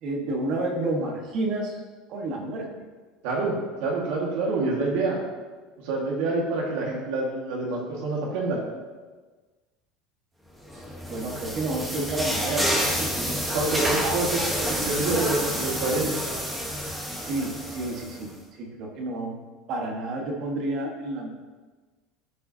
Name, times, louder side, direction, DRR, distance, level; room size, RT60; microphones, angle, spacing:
voice 1, 0.0-1.8 2.1-2.7 10.7-13.4 14.0-14.4 17.0-19.4 19.7-21.3, right 2 dB, 45° right, 1 dB, 1.4 m, -30 dB
voice 2, 3.2-5.2 5.8-8.6 13.5-16.1 16.8-16.9, right 3 dB, 70° right, -2 dB, 1.7 m, -27 dB
sound 1, 10.7-18.2, equal, 10° right, 1.2 m, -28 dB
13.0 x 5.4 x 2.8 m, 1.3 s
cardioid pair, 160°, 0 cm